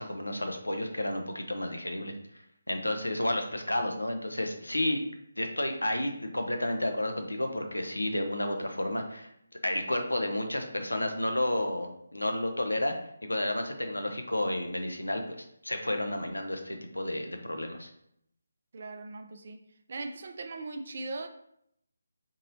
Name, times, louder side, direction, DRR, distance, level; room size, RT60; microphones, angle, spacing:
voice 1, 0.0-2.1 2.7-5.0 5.4-9.3 9.6-12.9 13.2-15.2 15.6-17.9, left 1 dB, 75° left, 5 dB, 0.6 m, -31 dB
voice 2, 18.7-19.6 19.9-21.3, right 3 dB, 45° right, 6 dB, 0.4 m, -39 dB
4.0 x 2.7 x 2.7 m, 0.74 s
figure-of-eight pair, 150°, 0 cm